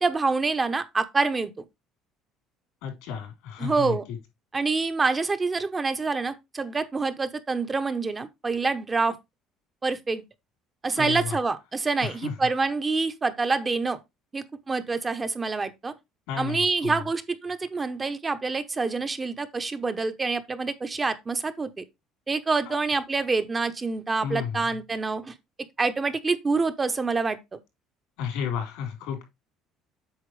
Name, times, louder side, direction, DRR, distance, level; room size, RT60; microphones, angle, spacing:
voice 1, 0.0-1.5 3.6-4.0 4.5-9.2 9.8-10.2 10.8-14.0 14.3-15.9 16.4-21.8 22.3-25.3 25.8-27.6, right 4 dB, 20° right, 0.9 m, -26 dB
voice 2, 2.8-4.0 11.0-11.4 12.0-12.3 16.3-17.0 22.7-22.8 24.2-24.5 28.2-29.2, left 8 dB, 85° left, 4.1 m, -32 dB
8.1 x 5.8 x 3.3 m
cardioid pair, 120°, 0 cm